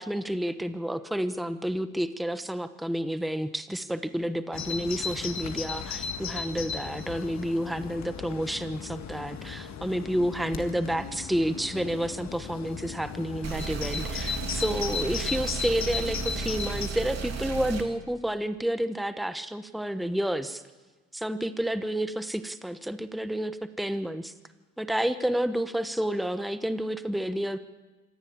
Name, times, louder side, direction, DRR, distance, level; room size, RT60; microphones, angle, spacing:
voice 1, 0.0-20.6 21.1-24.3 24.8-27.6, equal, ahead, 10 dB, 1.1 m, -30 dB
Bird vocalization bird call bird song, 4.5-16.9, left 6 dB, 65° left, 1.8 m, -36 dB
sound 1, 13.4-17.8, right 6 dB, 60° right, 2.9 m, -34 dB
26.0 x 15.0 x 8.7 m, 1.3 s
cardioid pair, 90°, 30 cm